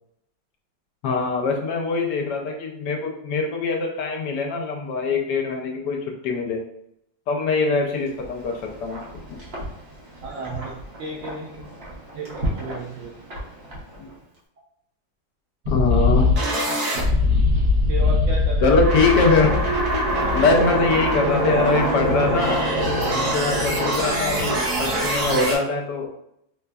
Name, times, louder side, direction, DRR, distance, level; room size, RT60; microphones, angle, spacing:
voice 1, 1.0-6.6 7.3-9.0 14.0-14.1 15.7-16.3 18.6-19.6 20.3-22.6 23.1-26.1, left 4 dB, 70° left, 1 dB, 1.1 m, -23 dB
Wind, 7.9-14.4, right 1 dB, 45° right, 0.9 m, -35 dB
voice 2, 10.2-11.7 12.1-13.1 17.9-18.8 20.1-20.4 23.0-23.5, right 3 dB, 90° right, -3 dB, 0.6 m, -33 dB
sound 1, 15.6-25.5, left 1 dB, 65° right, 1.3 m, -21 dB
4.5 x 2.5 x 2.2 m, 0.77 s
omnidirectional pair, 2.0 m